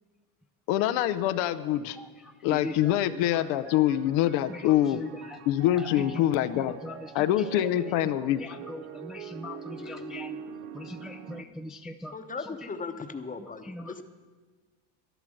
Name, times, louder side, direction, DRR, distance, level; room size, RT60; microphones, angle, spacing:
voice 1, 0.7-2.0 2.4-5.0 5.5-6.7 7.1-8.4, left 13 dB, 80° left, 11 dB, 0.8 m, -25 dB
voice 2, 2.5-2.9 4.5-5.1 6.0-6.1 6.5-6.9 8.1-8.2 8.4-10.4 10.7-12.1 13.7-14.0, left 1 dB, ahead, 6 dB, 0.4 m, -40 dB
sound 1, 2.6-11.4, right 7 dB, 70° right, 1.0 m, -44 dB
voice 3, 12.1-14.0, left 4 dB, 15° left, 8 dB, 1.0 m, -38 dB
11.5 x 11.0 x 6.3 m, 1.4 s
supercardioid pair, 95°, 47 cm